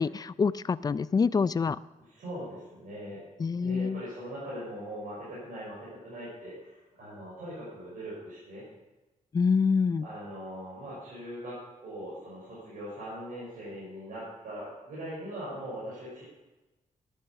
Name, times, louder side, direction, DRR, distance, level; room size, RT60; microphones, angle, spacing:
voice 1, 0.0-1.8 3.4-4.0 9.3-10.1, left 5 dB, 30° left, 17 dB, 0.4 m, -26 dB
voice 2, 2.1-3.2 3.6-8.6 10.0-16.2, equal, 80° right, -8 dB, 5.9 m, -41 dB
11.5 x 9.9 x 6.9 m, 1.1 s
cardioid pair, 115°, 14 cm